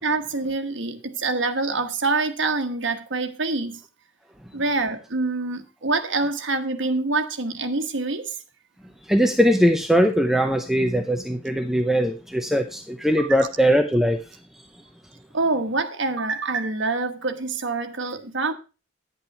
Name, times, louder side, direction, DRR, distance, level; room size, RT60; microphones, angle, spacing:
voice 1, 0.0-3.8 4.5-8.3 13.2-13.4 15.3-18.5, right 3 dB, 80° right, 1.3 m, -26 dB
voice 2, 9.1-14.2, equal, ahead, 0.7 m, -20 dB
10.5 x 8.3 x 4.6 m
head